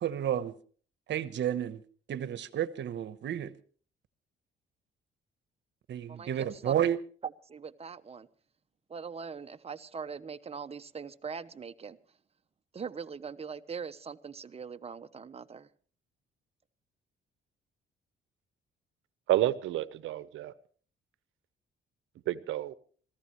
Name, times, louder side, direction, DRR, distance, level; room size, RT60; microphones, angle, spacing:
voice 1, 0.0-0.5 1.1-1.8 2.1-3.5 5.9-7.0, right 10 dB, 65° right, 1.1 m, -31 dB
voice 2, 6.1-6.7 7.2-8.3 8.9-12.0 12.7-15.7, right 6 dB, 30° right, 0.9 m, -41 dB
voice 3, 19.3-20.5 22.3-22.7, right 14 dB, 85° right, 0.9 m, -29 dB
26.5 x 15.0 x 3.1 m
cardioid pair, 90°, 20 cm